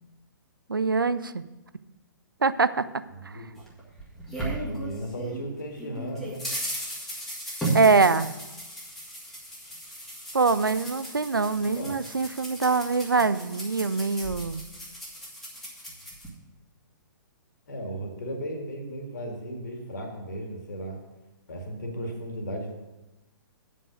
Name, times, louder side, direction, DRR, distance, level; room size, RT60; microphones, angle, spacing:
voice 1, 0.7-1.4 2.4-2.9 3.3-3.4 7.7-8.3 10.3-14.6, right 4 dB, 75° right, 14 dB, 0.4 m, -23 dB
voice 2, 3.1-3.5 4.4-6.4 11.6-12.0 17.7-21.0 21.5-22.7, right 1 dB, 60° left, 2 dB, 2.2 m, -36 dB
sound 1, 3.6-5.4 5.8-16.3, right 1 dB, ahead, 1.7 m, -36 dB
9.0 x 5.5 x 6.4 m, 1.0 s
figure-of-eight pair, 120°, 11 cm